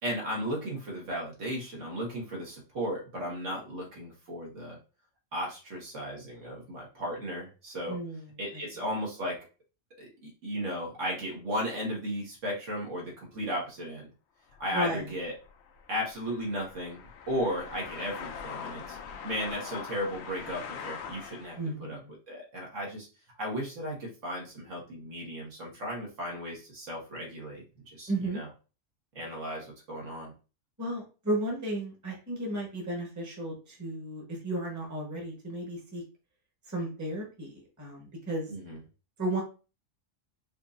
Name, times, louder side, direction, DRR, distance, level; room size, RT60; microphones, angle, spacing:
voice 1, 0.0-4.8 5.3-8.0 8.4-9.4 10.0-14.1 14.6-15.3 15.9-19.0 19.2-22.0 22.3-23.1 23.4-28.5 29.1-30.3 38.5-38.8, equal, 70° right, -3 dB, 1.7 m, -35 dB
voice 2, 7.9-8.3 14.7-15.1 21.6-22.1 28.1-28.4 30.8-36.0 36.7-38.5 39.2-39.4, right 1 dB, 15° right, -1 dB, 1.0 m, -34 dB
sound 1, 14.5-21.7, left 7 dB, 65° left, 0.8 m, -43 dB
4.6 x 2.6 x 2.5 m, 0.34 s
omnidirectional pair, 1.3 m